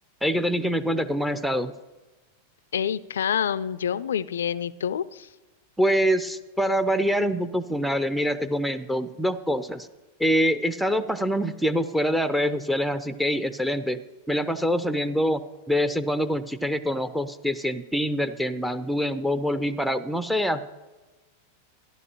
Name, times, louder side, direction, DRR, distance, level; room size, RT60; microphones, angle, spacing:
voice 1, 0.2-1.7 5.8-9.9 10.2-14.0 14.3-20.7, equal, ahead, 12 dB, 0.5 m, -25 dB
voice 2, 2.7-5.3, left 8 dB, 65° left, 17 dB, 0.3 m, -27 dB
13.5 x 10.5 x 2.9 m, 1.2 s
figure-of-eight pair, 90°, 0 cm